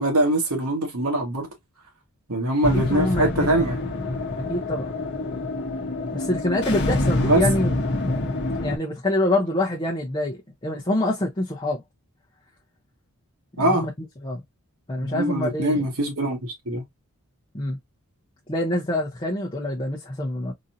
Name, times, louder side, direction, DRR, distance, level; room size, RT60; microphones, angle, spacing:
voice 1, 0.0-1.5 2.3-3.8 7.2-7.4 13.6-13.9 15.0-16.8, right 1 dB, 80° right, 1.5 m, -23 dB
sound 1, 2.6-8.8, left 2 dB, 50° left, 1.0 m, -26 dB
voice 2, 2.7-3.7 4.5-4.9 6.1-8.2 8.6-11.8 13.6-13.9 14.2-14.4 14.9-15.8 17.5-17.8 18.5-20.5, left 1 dB, 20° left, 0.7 m, -26 dB
3.9 x 2.7 x 2.6 m
head